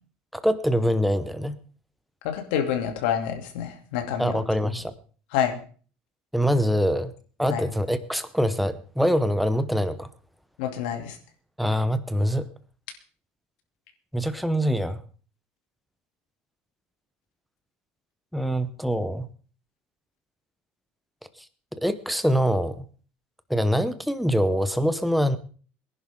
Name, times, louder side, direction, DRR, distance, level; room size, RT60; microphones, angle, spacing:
voice 1, 0.3-1.6 4.2-4.9 6.3-7.1 7.4-10.1 11.6-12.5 14.1-15.0 18.3-19.3 21.8-22.8 23.5-25.4, equal, ahead, 11 dB, 0.8 m, -24 dB
voice 2, 2.2-4.4 5.3-5.6 7.5-7.6 10.6-11.2, left 9 dB, 85° left, 5 dB, 2.7 m, -27 dB
23.0 x 11.0 x 3.7 m, 0.41 s
cardioid pair, 180°, 5 cm